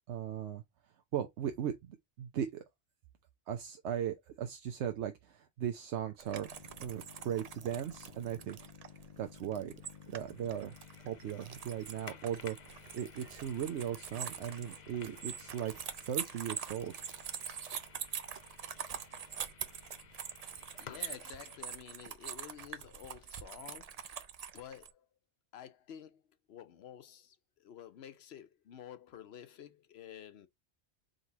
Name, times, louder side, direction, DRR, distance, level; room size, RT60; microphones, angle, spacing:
voice 1, 0.1-0.6 1.1-2.6 3.5-6.5 6.8-8.7 9.2-9.7 10.1-10.8 11.0-17.0, right 9 dB, 80° right, 1.0 m, -38 dB
sound 1, 6.2-24.9, right 8 dB, 55° right, 0.4 m, -44 dB
sound 2, 6.5-21.6, left 7 dB, 50° left, 0.5 m, -55 dB
voice 2, 20.8-24.2 24.5-25.1 25.5-26.2 26.5-30.5, left 9 dB, 70° left, 0.9 m, -51 dB
3.9 x 3.1 x 4.0 m
omnidirectional pair, 1.2 m